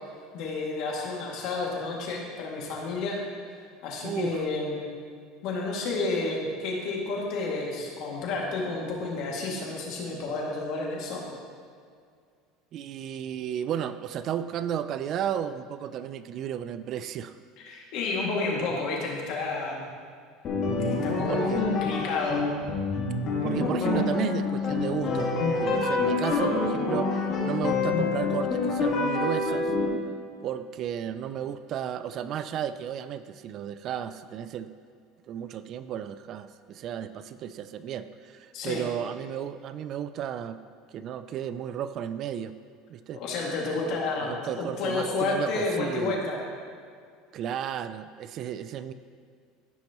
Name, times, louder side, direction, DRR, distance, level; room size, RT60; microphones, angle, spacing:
voice 1, 0.3-3.2 3.8-4.8 5.4-11.2 17.6-19.8 20.8-22.4 23.4-23.5 38.5-38.9 43.1-46.4, left 3 dB, 60° left, -2 dB, 2.1 m, -31 dB
voice 2, 4.0-4.4 12.7-17.3 21.3-21.7 23.4-29.7 30.4-34.7 35.3-40.6 40.9-42.5 42.9-43.2 44.2-46.2 47.3-48.9, right 9 dB, 45° right, 12 dB, 0.3 m, -33 dB
sound 1, 20.4-29.9, left 3 dB, 40° left, 1.8 m, -27 dB
15.0 x 5.9 x 3.0 m, 2.2 s
supercardioid pair, 140°, 0 cm